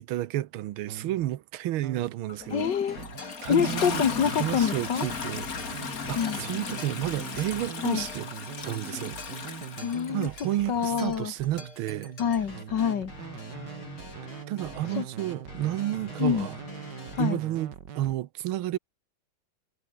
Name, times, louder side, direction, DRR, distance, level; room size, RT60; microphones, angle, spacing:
voice 1, 0.0-2.7 3.4-4.0 4.4-5.8 6.1-8.3 8.6-9.2 10.1-12.1 14.5-16.6 17.2-18.8, right 14 dB, 85° right, 1.7 m, -31 dB
sound 1, 0.9-1.3 1.8-2.3 3.0-3.7 4.1-4.5 5.1-18.2, right 8 dB, 60° right, 2.0 m, -43 dB
Toilet flush, 2.3-10.7 11.8-11.9, left 5 dB, 45° left, 2.4 m, -36 dB
voice 2, 2.5-3.0 3.5-5.1 6.1-6.4 7.8-8.1 9.8-10.3 10.7-11.3 12.2-13.1 14.9-15.1 16.2-16.5 17.2-17.4, left 8 dB, 60° left, 2.1 m, -26 dB
sound 2, 2.9-17.3, left 2 dB, 80° left, 8.1 m, -45 dB
omnidirectional pair, 2.3 m